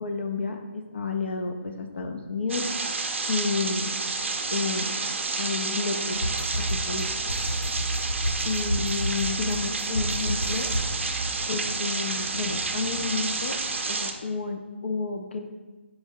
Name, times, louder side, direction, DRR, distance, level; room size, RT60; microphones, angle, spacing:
voice 1, 0.0-2.6 3.3-3.9 4.5-4.9 5.4-6.2 6.5-7.1 8.4-10.7 11.5-13.6 13.9-15.4, left 4 dB, 60° left, 5 dB, 0.4 m, -30 dB
sound 1, 2.5-14.1, right 4 dB, 70° right, 0.4 m, -30 dB
sound 2, 6.1-11.4, equal, 85° left, 1.0 m, -30 dB
4.4 x 2.1 x 3.6 m, 1.3 s
figure-of-eight pair, 155°, 7 cm